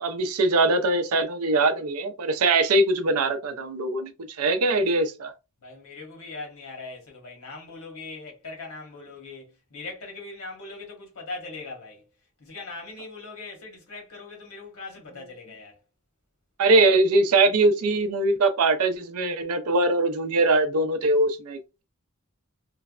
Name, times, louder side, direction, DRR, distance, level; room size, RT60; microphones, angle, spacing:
voice 1, 0.0-4.1 4.4-5.3 16.6-21.8, right 2 dB, 80° right, 0.5 m, -22 dB
voice 2, 5.6-12.1 12.4-15.8, left 3 dB, 80° left, 1.1 m, -40 dB
3.2 x 2.1 x 2.4 m
head